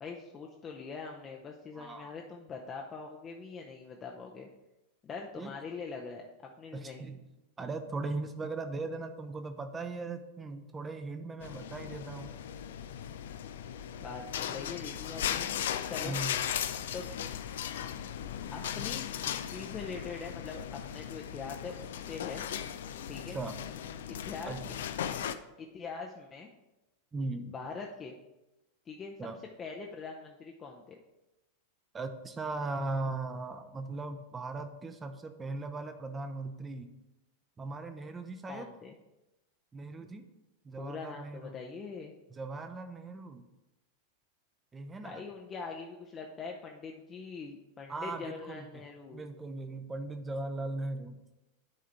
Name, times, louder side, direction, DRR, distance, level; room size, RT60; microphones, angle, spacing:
voice 1, 0.0-4.5 5.0-7.1 14.0-16.2 16.9-17.1 18.5-22.4 23.1-23.4 24.0-24.6 25.6-26.5 27.5-28.2 28.9-29.1 29.6-31.0 38.5-39.0 40.8-42.1 45.0-49.2, left 5 dB, 25° left, 1 dB, 0.7 m, -43 dB
voice 2, 1.8-2.1 5.4-5.5 6.7-7.2 7.6-12.3 16.0-16.4 23.3-23.6 24.5-24.6 27.1-27.5 29.2-29.4 31.9-36.9 37.6-38.7 39.7-40.2 40.6-41.6 42.3-43.4 44.7-45.2 47.9-48.6 49.1-51.2, right 3 dB, 15° right, 7 dB, 0.7 m, -38 dB
sound 1, 11.4-25.3, left 9 dB, 60° left, 0.4 m, -37 dB
10.5 x 3.7 x 4.5 m, 0.97 s
figure-of-eight pair, 90°, 0 cm